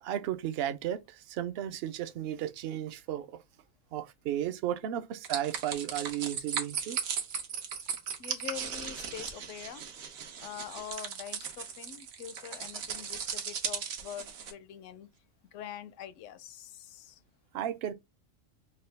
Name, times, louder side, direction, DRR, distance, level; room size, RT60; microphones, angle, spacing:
voice 1, 0.0-3.4 3.9-7.0 17.5-17.9, right 11 dB, 65° right, 0.7 m, -34 dB
sound 1, 5.2-14.5, right 7 dB, 80° right, 1.3 m, -37 dB
voice 2, 8.2-9.8 10.4-15.1 15.5-17.2, left 10 dB, 70° left, 0.9 m, -44 dB
5.5 x 2.3 x 3.3 m
omnidirectional pair, 1.4 m